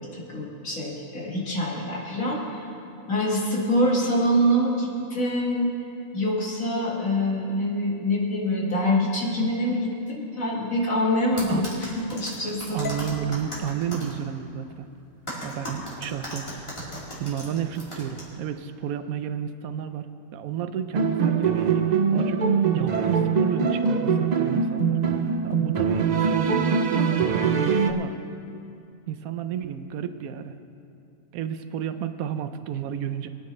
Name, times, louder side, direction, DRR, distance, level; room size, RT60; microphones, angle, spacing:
voice 1, 0.1-2.7 3.1-5.7 6.1-12.8, equal, 75° left, -3 dB, 2.4 m, -25 dB
sound 1, 11.4-14.1 15.3-18.2, equal, 20° left, 3.0 m, -36 dB
voice 2, 12.7-14.9 15.4-16.5 17.2-20.1 20.3-25.0 25.4-28.2 29.1-30.5 31.3-33.3, right 9 dB, 85° right, 10 dB, 1.1 m, -31 dB
sound 2, 12.8-17.0, left 5 dB, 50° left, 0.7 m, -43 dB
sound 3, 20.9-27.9, right 5 dB, 60° right, 0.4 m, -23 dB
22.0 x 9.8 x 3.2 m, 2.6 s
omnidirectional pair, 1.4 m